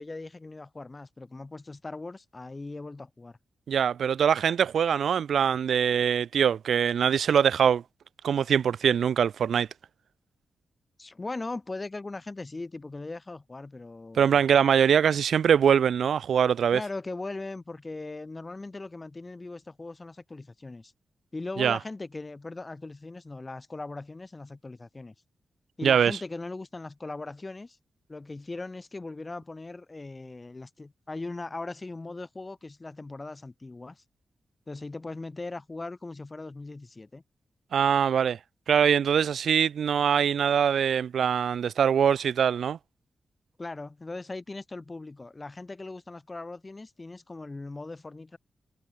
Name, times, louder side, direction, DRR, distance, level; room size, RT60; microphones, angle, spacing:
voice 1, 0.0-3.4 11.0-14.4 16.7-20.9 21.3-25.1 25.8-27.8 28.1-34.0 34.7-37.2 43.6-48.4, left 3 dB, 20° left, 3.9 m, -39 dB
voice 2, 3.7-7.8 8.2-9.7 14.1-16.8 21.6-21.8 25.8-26.2 37.7-38.4 38.7-42.8, right 8 dB, 90° right, 0.7 m, -23 dB
wide cardioid pair, 155°, 0 cm